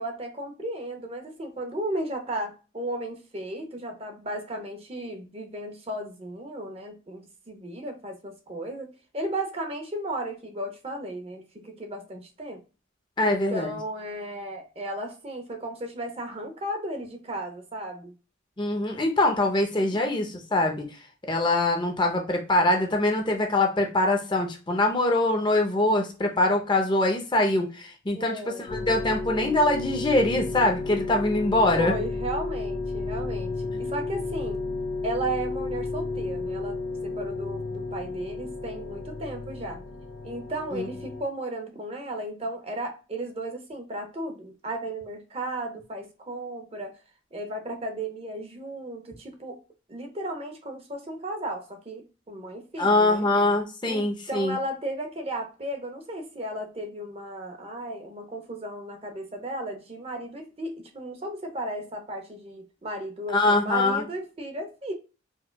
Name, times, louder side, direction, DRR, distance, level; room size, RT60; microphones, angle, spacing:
voice 1, 0.0-12.6 13.2-18.1 19.9-20.0 28.1-28.7 31.7-34.6 35.0-36.8 37.0-39.8 40.2-46.9 47.3-49.6 49.9-53.3 53.9-64.9, right 1 dB, 30° right, 0.6 m, -35 dB
voice 2, 13.2-13.8 18.6-31.9 40.7-40.9 52.8-54.6 63.3-64.0, left 2 dB, 20° left, 0.5 m, -23 dB
sound 1, 28.7-41.2, left 3 dB, 85° left, 0.7 m, -32 dB
4.5 x 2.2 x 2.2 m
head